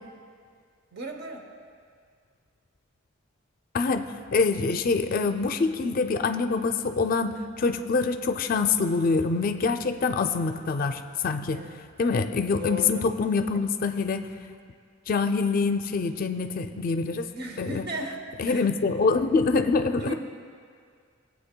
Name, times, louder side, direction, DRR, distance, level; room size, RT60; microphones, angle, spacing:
voice 1, 0.9-1.5 11.5-11.9 12.6-13.1 17.3-18.7 20.0-20.1, right 1 dB, 55° right, 4 dB, 0.8 m, -36 dB
voice 2, 3.7-4.1 4.3-11.6 12.0-14.3 15.1-17.3 17.6-17.9 18.4-20.1, left 4 dB, 45° left, 7 dB, 0.4 m, -25 dB
17.5 x 8.1 x 2.2 m, 2.1 s
head